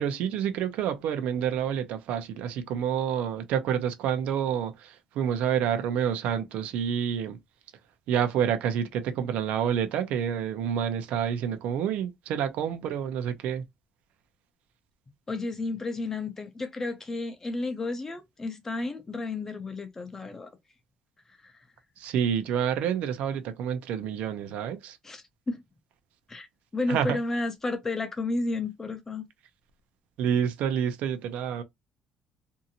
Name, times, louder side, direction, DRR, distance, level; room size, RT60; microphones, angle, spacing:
voice 1, 0.0-7.4 8.1-13.6 22.0-25.0 26.9-27.2 30.2-31.6, right 8 dB, 75° right, 0.6 m, -28 dB
voice 2, 15.3-20.5 21.4-21.6 25.0-25.6 26.3-26.5 26.7-29.3, left 2 dB, 15° left, 0.5 m, -32 dB
2.7 x 2.5 x 2.7 m
cardioid pair, 155°, 2 cm